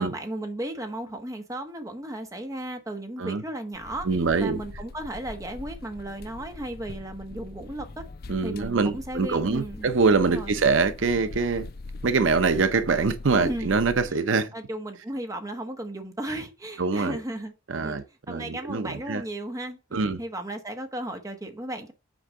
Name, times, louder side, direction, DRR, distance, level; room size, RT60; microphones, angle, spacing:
voice 1, 0.0-4.1 4.4-8.0 8.4-10.5 13.3-13.7 14.0-14.1 14.5-17.5 17.8-21.9, right 1 dB, 15° right, 1.3 m, -35 dB
sound 1, 3.7-14.1, left 3 dB, 50° left, 0.6 m, -41 dB
voice 2, 4.1-4.6 8.3-11.7 12.0-14.5 16.8-17.2 17.7-19.2 19.9-20.2, right 4 dB, 75° right, 0.7 m, -24 dB
6.3 x 4.5 x 6.5 m
head